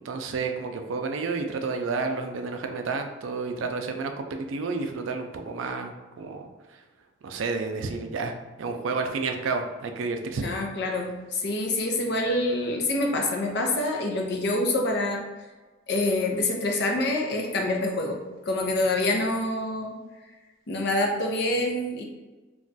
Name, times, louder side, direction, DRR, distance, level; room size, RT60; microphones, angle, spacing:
voice 1, 0.0-6.5 7.2-8.3 8.6-10.5, right 4 dB, 90° right, 5 dB, 0.4 m, -30 dB
voice 2, 10.4-15.2 15.9-18.2 18.5-19.9 20.7-22.0, left 2 dB, 60° left, 1 dB, 0.5 m, -26 dB
2.4 x 2.2 x 3.8 m, 1.2 s
head